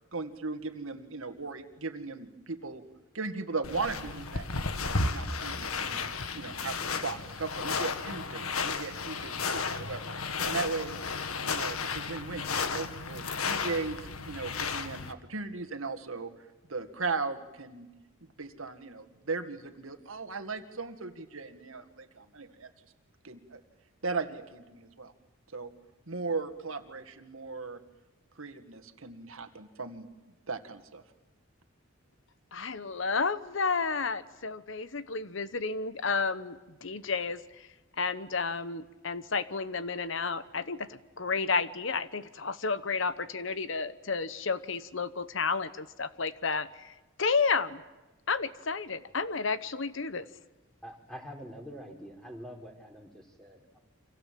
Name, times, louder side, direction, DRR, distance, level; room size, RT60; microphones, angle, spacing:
voice 1, 0.1-2.8 3.1-6.0 6.3-11.0 11.4-16.3 16.7-17.9 18.4-22.7 23.2-23.6 24.0-25.1 25.5-25.7 26.1-27.8 28.4-31.0, right 4 dB, 75° right, 8 dB, 1.9 m, -37 dB
sound 1, 3.6-15.1, left 4 dB, 90° left, 1.8 m, -33 dB
voice 2, 32.5-37.7 38.0-47.8 48.3-50.2, left 4 dB, 65° left, 14 dB, 1.0 m, -31 dB
voice 3, 50.8-53.8, equal, 5° left, 2 dB, 4.1 m, -45 dB
29.5 x 25.5 x 7.6 m, 1.1 s
head